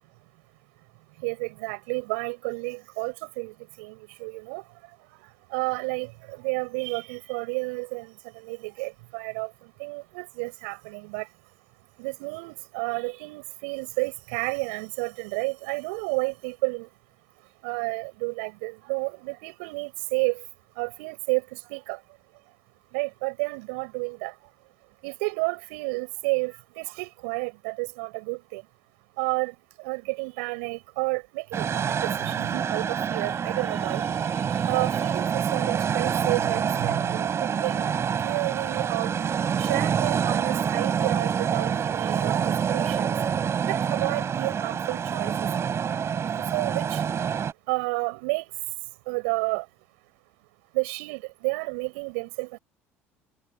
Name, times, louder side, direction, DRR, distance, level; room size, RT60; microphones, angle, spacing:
voice 1, 1.2-4.6 5.5-8.1 8.4-9.5 9.8-11.3 12.0-16.9 17.6-20.4 20.8-21.4 21.7-22.0 22.9-24.3 25.0-28.6 29.2-29.5 29.8-34.1 34.3-37.8 38.2-39.1 39.6-43.1 43.7-45.5 46.5-47.0 47.7-48.4 49.1-49.6 50.7-52.6, right 33 dB, 70° right, 6.2 m, -31 dB
sound 1, 31.5-47.5, right 7 dB, 40° right, 4.2 m, -27 dB
hypercardioid pair, 60°, 7 cm